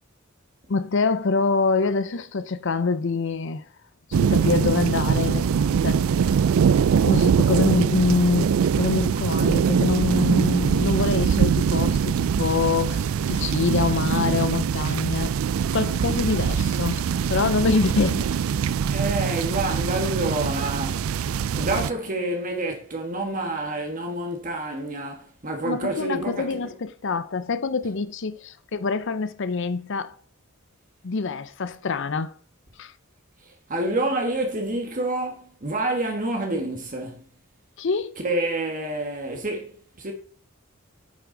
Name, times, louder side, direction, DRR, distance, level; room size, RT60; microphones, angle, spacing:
voice 1, 0.7-3.6 4.1-6.4 7.0-15.4 15.7-17.0 17.3-18.3 25.6-30.1 31.0-32.3 32.8-32.9 37.8-38.2, left 4 dB, 60° left, 0.6 m, -25 dB
sound 1, 4.1-21.9, right 7 dB, 80° right, 0.4 m, -23 dB
voice 2, 18.9-21.1 21.5-26.6 33.4-37.3 38.2-40.1, right 2 dB, 40° right, 1.5 m, -28 dB
9.3 x 8.2 x 3.9 m
head